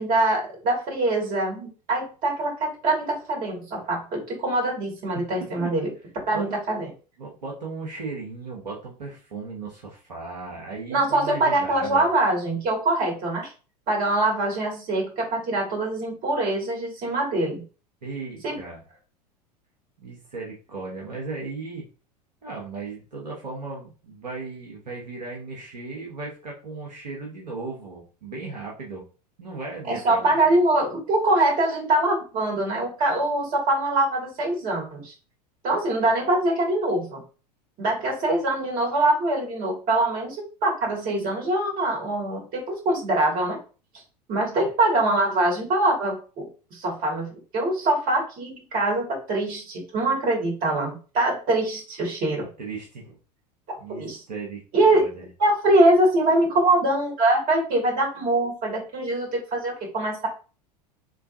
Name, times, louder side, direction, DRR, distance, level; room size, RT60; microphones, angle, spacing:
voice 1, 0.0-5.9 6.3-6.9 10.9-13.5 13.9-17.6 18.4-18.6 29.9-35.1 35.6-37.2 37.8-40.4 40.6-43.6 44.3-52.5 53.9-54.2 54.7-55.0 55.4-60.3, right 2 dB, 40° right, -1 dB, 2.2 m, -23 dB
voice 2, 5.1-5.7 6.3-6.6 7.2-12.1 18.0-18.8 20.0-21.9 22.4-29.0 29.4-30.5 52.4-53.2 53.8-55.3, right 3 dB, 80° right, -3 dB, 1.2 m, -36 dB
3.7 x 3.4 x 2.6 m, 0.35 s
figure-of-eight pair, 80°, 21 cm